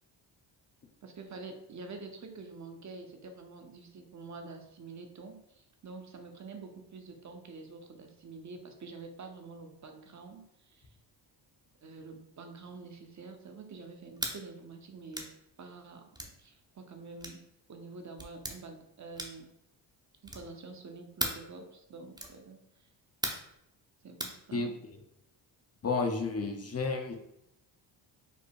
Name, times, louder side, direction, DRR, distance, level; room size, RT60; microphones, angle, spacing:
voice 1, 1.0-10.9 11.8-15.3 15.6-16.1 16.4-17.4 17.7-19.5 20.2-22.9 24.0-24.8, right 3 dB, 40° right, 4 dB, 0.9 m, -47 dB
sound 1, 14.2-14.4 15.1-15.3 16.1-16.4 17.2-17.4 18.2-18.6 19.1-19.5 20.2-20.5 21.2-21.5 22.1-22.4 23.2-23.5 24.2-24.4, right 1 dB, 10° right, 0.8 m, -36 dB
voice 2, 25.8-27.2, left 4 dB, 30° left, 4 dB, 0.8 m, -31 dB
5.3 x 2.0 x 4.6 m, 0.80 s
cardioid pair, 75°, 46 cm